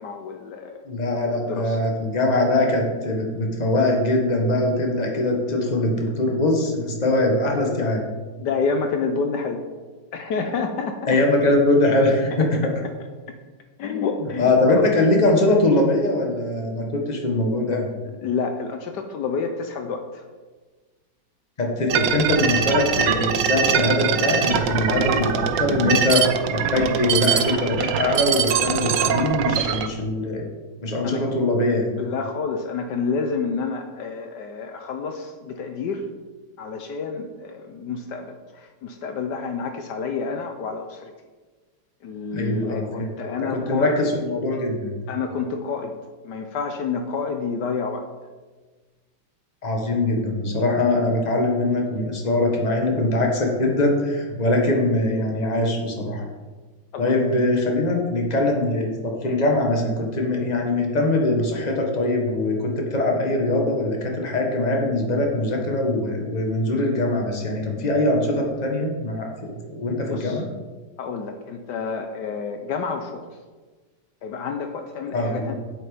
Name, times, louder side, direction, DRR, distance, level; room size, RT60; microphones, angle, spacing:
voice 1, 0.0-0.8 1.3-1.8 8.4-9.6 10.1-11.2 13.8-14.9 18.1-20.2 31.0-31.3 32.0-36.1 36.6-41.1 42.0-43.9 45.1-46.0 46.2-48.0 56.9-57.4 70.0-70.4 71.0-73.3 74.2-75.5, left 5 dB, 75° left, 5 dB, 1.3 m, -29 dB
voice 2, 0.9-8.1 11.1-12.7 14.4-17.9 21.6-30.4 30.8-31.9 42.3-45.0 49.6-56.3 57.0-70.4 75.1-75.5, left 2 dB, 25° left, 1 dB, 1.4 m, -22 dB
sound 1, 21.9-29.9, right 8 dB, 80° right, 1.4 m, -23 dB
8.0 x 8.0 x 5.0 m, 1.3 s
omnidirectional pair, 2.0 m